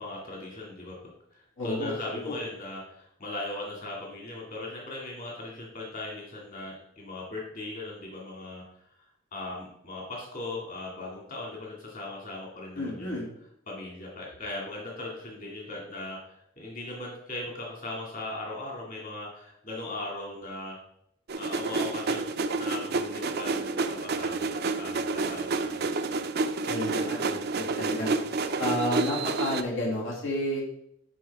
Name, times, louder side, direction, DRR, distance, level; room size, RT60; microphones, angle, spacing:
voice 1, 0.0-9.1 9.3-13.3 13.7-20.8 21.3-25.9, left 2 dB, 45° left, -3 dB, 2.4 m, -39 dB
voice 2, 1.6-1.9 2.3-2.4 12.8-13.2 26.7-28.1 28.6-30.6, left 1 dB, 80° left, -4 dB, 2.5 m, -31 dB
sound 1, 21.3-29.6, right 3 dB, 55° right, 0.5 m, -29 dB
11.5 x 5.0 x 3.6 m, 0.74 s
head